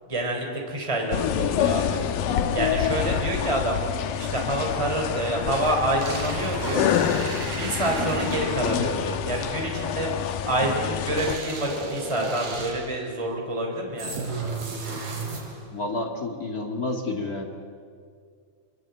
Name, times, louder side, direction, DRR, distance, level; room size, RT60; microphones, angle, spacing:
voice 1, 0.1-2.0 2.5-3.8 4.2-6.9 7.5-10.1 10.4-14.1, right 1 dB, 10° right, 1 dB, 3.3 m, -27 dB
sound 1, 1.1-11.4, left 9 dB, 70° left, 2.6 m, -27 dB
sound 2, 5.5-6.3 6.6-9.3 9.6-10.5, right 3 dB, 45° right, 3.2 m, -42 dB
sound 3, 5.6-8.8 11.2-13.0 14.0-15.7, right 3 dB, 80° right, 6.6 m, -34 dB
voice 2, 15.7-17.4, left 2 dB, 40° left, 2 dB, 1.4 m, -30 dB
25.0 x 23.0 x 8.2 m, 2.3 s
omnidirectional pair, 4.4 m